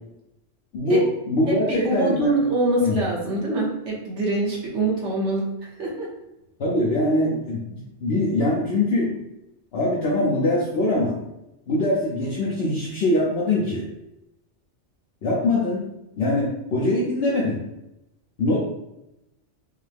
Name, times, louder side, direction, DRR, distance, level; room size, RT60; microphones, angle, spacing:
voice 1, 0.7-2.3 2.8-3.0 6.6-9.2 9.7-11.2 11.7-13.9 15.2-15.9 16.2-17.6 18.4-18.6, left 1 dB, 60° left, -5 dB, 1.0 m, -23 dB
voice 2, 1.5-6.1, right 2 dB, 70° right, -4 dB, 1.5 m, -25 dB
5.4 x 2.2 x 3.4 m, 0.90 s
omnidirectional pair, 1.2 m